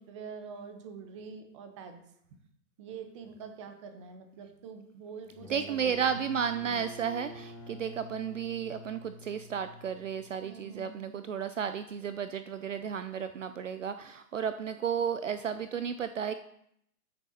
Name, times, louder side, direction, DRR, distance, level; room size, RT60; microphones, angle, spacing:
voice 1, 0.0-2.0 2.8-6.2 6.6-6.8 10.4-11.3, right 5 dB, 20° right, 6 dB, 0.7 m, -45 dB
sound 1, 5.2-10.8, left 1 dB, 10° left, 1.3 m, -48 dB
voice 2, 5.5-16.3, right 7 dB, 55° right, 11 dB, 0.5 m, -33 dB
13.5 x 6.6 x 2.8 m, 0.74 s
figure-of-eight pair, 130°, 48 cm